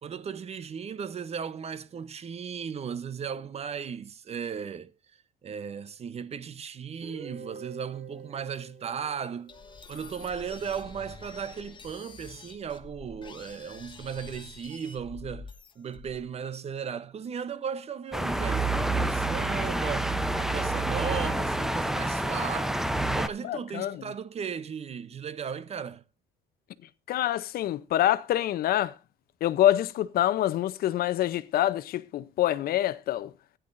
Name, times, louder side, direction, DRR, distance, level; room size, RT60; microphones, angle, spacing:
voice 1, 0.0-4.9 5.4-9.5 9.9-22.9 23.2-26.0, right 7 dB, 40° right, 0.8 m, -36 dB
Guitar, 7.0-10.8, right 5 dB, 55° right, 2.0 m, -47 dB
sound 1, 9.5-16.3, left 4 dB, 30° left, 1.3 m, -47 dB
sound 2, 18.1-23.3, right 2 dB, ahead, 0.7 m, -28 dB
voice 2, 23.4-24.0 27.1-28.9 29.4-33.3, left 13 dB, 65° left, 0.7 m, -26 dB
15.0 x 10.0 x 2.6 m
cardioid pair, 110°, 17 cm